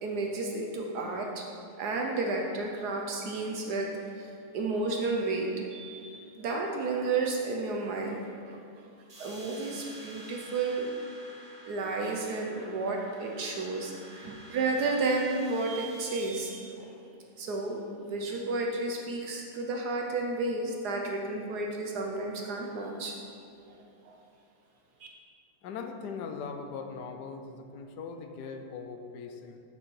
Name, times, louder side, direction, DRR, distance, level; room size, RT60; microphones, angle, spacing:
voice 1, 0.0-1.5 1.8-8.2 8.5-8.6 9.2-10.9 11.7-16.9 17.4-23.2 23.7-24.1, right 3 dB, 65° right, 1 dB, 1.2 m, -32 dB
sound 1, 9.1-16.3, right 1 dB, 25° right, 0.7 m, -50 dB
voice 2, 25.6-29.6, left 5 dB, 70° left, 5 dB, 1.2 m, -40 dB
7.0 x 6.5 x 4.7 m, 2.5 s
omnidirectional pair, 2.0 m